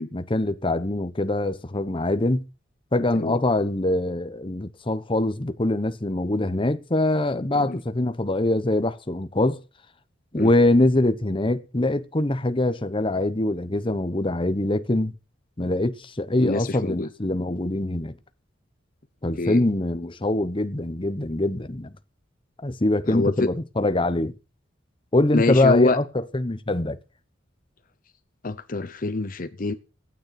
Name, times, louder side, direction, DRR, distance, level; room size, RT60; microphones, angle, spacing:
voice 1, 0.1-2.4 2.9-9.6 10.3-15.1 15.6-18.1 19.2-21.9 22.6-24.3 25.1-26.0 26.3-27.0, left 2 dB, 25° left, 1.0 m, -23 dB
voice 2, 16.4-17.1 19.4-19.6 23.1-23.5 25.3-26.0 28.4-29.7, left 2 dB, 50° left, 0.8 m, -25 dB
15.0 x 9.5 x 5.9 m
head